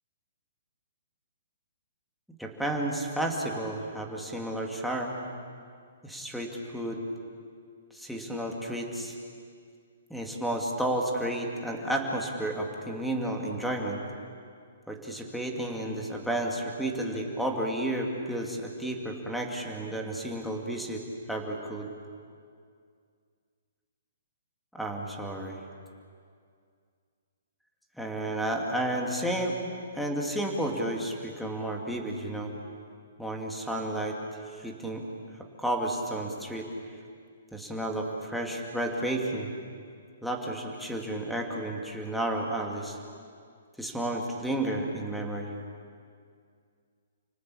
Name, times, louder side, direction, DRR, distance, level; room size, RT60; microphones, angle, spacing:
voice 1, 2.4-5.1 6.0-7.0 7.9-9.1 10.1-14.0 14.9-21.0 21.3-21.9 24.7-25.6 28.0-29.6 29.9-32.5 33.2-34.2 34.5-35.0 35.3-36.7 37.5-39.5 40.2-43.0 43.8-45.5, right 1 dB, ahead, 0 dB, 2.6 m, -32 dB
29.5 x 18.5 x 8.7 m, 2.2 s
hypercardioid pair, 160°, 0 cm